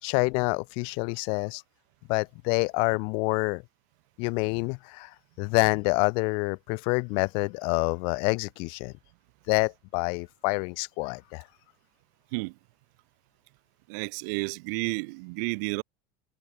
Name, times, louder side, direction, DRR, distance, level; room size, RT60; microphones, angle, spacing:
voice 1, 0.0-1.6 2.1-3.6 4.2-8.9 9.5-11.4, left 34 dB, 65° left, 2.7 m, -27 dB
voice 2, 13.9-15.8, right 31 dB, 70° right, 7.2 m, -31 dB
supercardioid pair, 125°, 10 cm